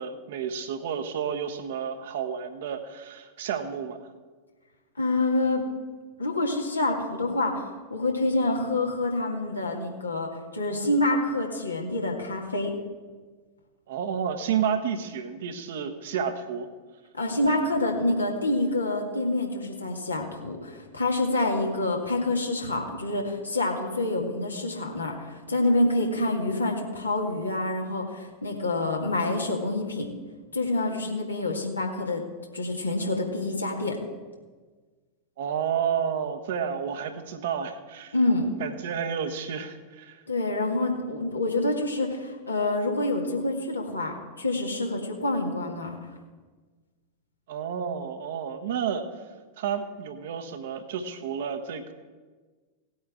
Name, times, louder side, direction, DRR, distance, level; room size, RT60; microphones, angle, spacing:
voice 1, 0.0-4.1 13.9-16.7 35.4-38.2 38.6-40.2 47.5-49.2 49.6-51.9, right 7 dB, 55° right, 6 dB, 1.2 m, -31 dB
voice 2, 5.0-5.6 6.2-7.6 7.9-12.7 17.1-30.1 30.5-32.2 32.5-34.0 38.1-38.5 40.3-46.0, left 2 dB, 80° left, 0 dB, 1.9 m, -27 dB
18.0 x 8.6 x 3.7 m, 1.4 s
figure-of-eight pair, 90°, 0 cm